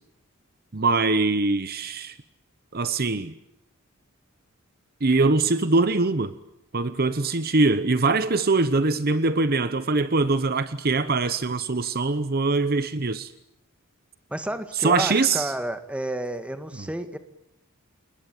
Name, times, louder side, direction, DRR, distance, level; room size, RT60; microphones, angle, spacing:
voice 1, 0.7-2.2 2.7-3.3 5.0-6.3 6.7-13.3 14.8-15.5, right 3 dB, 45° right, 1.0 m, -22 dB
voice 2, 14.3-17.2, right 1 dB, 5° right, 1.9 m, -30 dB
29.0 x 21.0 x 9.1 m
head